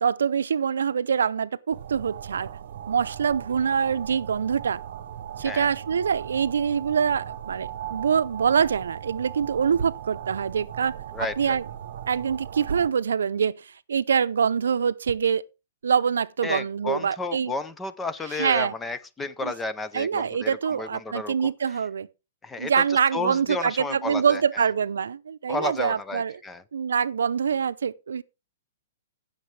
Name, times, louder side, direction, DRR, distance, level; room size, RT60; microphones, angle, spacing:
voice 1, 0.0-2.5 2.9-4.8 5.4-10.9 11.2-11.6 12.1-15.4 15.8-17.5 18.4-18.7 19.4-19.5 19.9-22.1 22.6-26.4 26.7-28.2, right 7 dB, 90° right, 0.6 m, -25 dB
sound 1, 1.7-12.9, right 10 dB, 55° right, 0.9 m, -38 dB
voice 2, 11.1-11.6 16.4-21.8 22.4-24.6 25.5-26.6, left 3 dB, 10° left, 0.6 m, -32 dB
16.5 x 6.7 x 3.3 m
hypercardioid pair, 155°, 0 cm